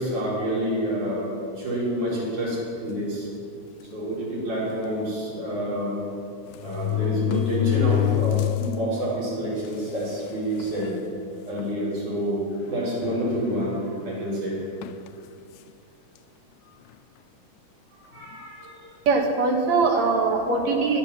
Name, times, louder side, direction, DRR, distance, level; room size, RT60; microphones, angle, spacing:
voice 1, 0.0-3.3 3.9-6.0 6.6-10.9 11.5-14.6 17.9-18.8, equal, 80° right, -7 dB, 6.8 m, -28 dB
sound 1, 2.9-3.2 3.9-4.0 4.3-4.4 5.7-5.8 6.5-8.8 9.2-9.3 10.1-10.2 10.6-11.0 11.6-11.7 13.0-13.8 14.8-15.1, left 15 dB, 80° left, 1.9 m, -26 dB
voice 2, 19.1-21.0, right 4 dB, 65° right, 1 dB, 3.0 m, -21 dB
23.5 x 10.0 x 6.0 m, 2.6 s
omnidirectional pair, 3.5 m